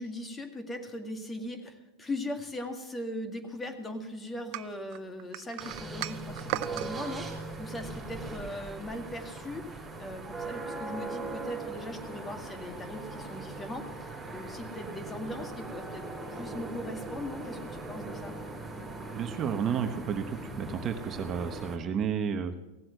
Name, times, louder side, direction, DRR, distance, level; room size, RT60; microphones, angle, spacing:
voice 1, 0.0-18.3, left 1 dB, 15° left, 6 dB, 2.0 m, -39 dB
sound 1, 4.5-6.9, right 17 dB, 55° right, 0.5 m, -36 dB
sound 2, 5.6-21.8, right 2 dB, 15° right, 3.9 m, -40 dB
voice 2, 19.1-22.5, right 7 dB, 35° right, 8 dB, 1.0 m, -32 dB
16.0 x 7.6 x 7.9 m, 1.1 s
hypercardioid pair, 110°, 0 cm